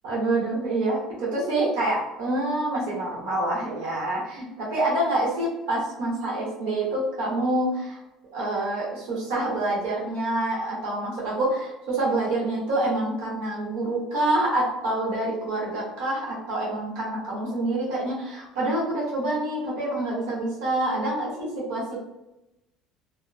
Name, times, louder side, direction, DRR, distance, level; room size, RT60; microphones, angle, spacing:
voice 1, 0.0-8.0 8.3-22.0, right 1 dB, 85° right, -5 dB, 1.2 m, -27 dB
2.8 x 2.0 x 2.5 m, 0.94 s
cardioid pair, 130°, 0 cm